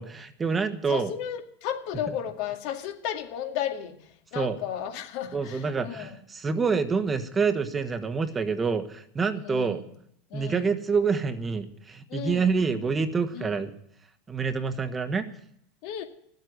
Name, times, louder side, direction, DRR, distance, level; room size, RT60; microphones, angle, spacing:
voice 1, 0.0-1.1 4.3-4.6 5.3-9.8 10.3-13.7 14.3-15.2, right 5 dB, 25° right, 10 dB, 1.4 m, -27 dB
voice 2, 0.9-4.0 4.3-6.2 9.4-9.8 10.3-10.7 12.1-12.6 13.3-13.6 15.8-16.0, left 10 dB, 60° left, 4 dB, 2.1 m, -34 dB
13.0 x 8.1 x 9.5 m, 0.70 s
hypercardioid pair, 90°, 0 cm